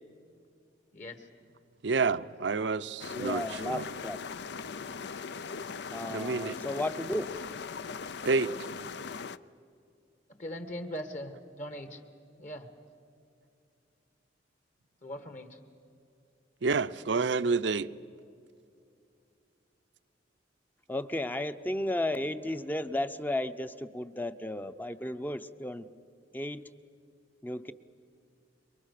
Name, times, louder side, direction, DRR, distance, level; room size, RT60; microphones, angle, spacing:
voice 1, 0.9-1.3 10.4-12.0 12.4-12.7 15.0-15.6, equal, 45° left, 1.7 m, -40 dB
voice 2, 1.8-3.9 6.1-6.6 8.3-8.5 16.6-17.9, right 4 dB, 75° right, 0.7 m, -29 dB
sound 1, 3.0-9.4, left 5 dB, 65° left, 0.6 m, -40 dB
voice 3, 3.1-4.2 5.9-7.3 20.9-25.9 26.3-26.7 27.4-27.7, left 1 dB, 10° left, 0.7 m, -34 dB
28.0 x 23.5 x 6.7 m
head